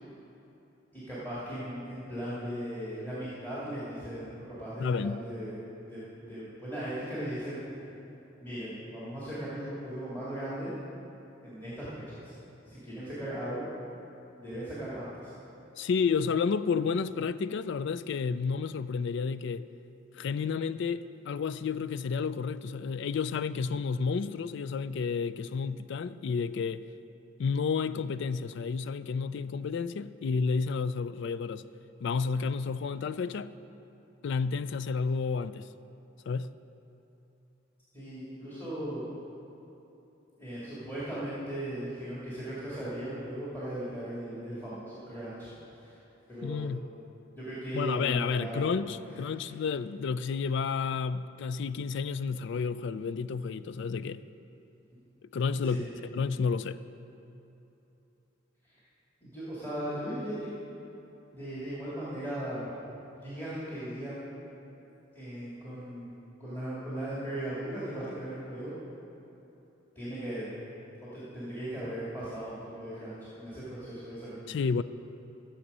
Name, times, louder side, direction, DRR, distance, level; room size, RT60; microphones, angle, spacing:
voice 1, 0.9-5.6 5.8-7.6 8.4-10.7 11.4-12.3 12.7-13.7 14.4-15.3 37.9-39.0 40.4-46.0 46.3-46.6 47.3-48.7 49.4-49.5 55.6-55.9 59.2-60.5 61.3-62.7 63.2-64.3 65.1-66.1 66.4-68.8 70.0-70.5 71.1-74.5, right 1 dB, 10° left, 2.3 m, -38 dB
voice 2, 4.8-5.3 15.8-19.7 20.1-26.8 27.4-31.7 32.0-33.5 34.2-35.7 36.3-36.5 46.4-46.8 47.7-54.2 55.3-55.9 56.1-56.8 74.5-74.8, left 5 dB, 65° left, 0.3 m, -31 dB
15.0 x 7.1 x 5.4 m
head